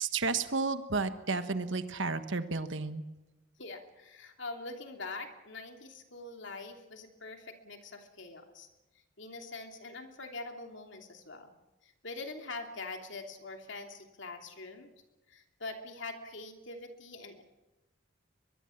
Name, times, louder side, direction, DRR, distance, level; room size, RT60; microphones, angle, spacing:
voice 1, 0.0-3.0, right 4 dB, 65° right, 10 dB, 1.3 m, -32 dB
voice 2, 3.6-8.7 9.2-11.5 11.8-14.9 15.3-17.4, left 3 dB, 60° left, 4 dB, 2.9 m, -44 dB
23.0 x 22.0 x 7.2 m, 1.1 s
head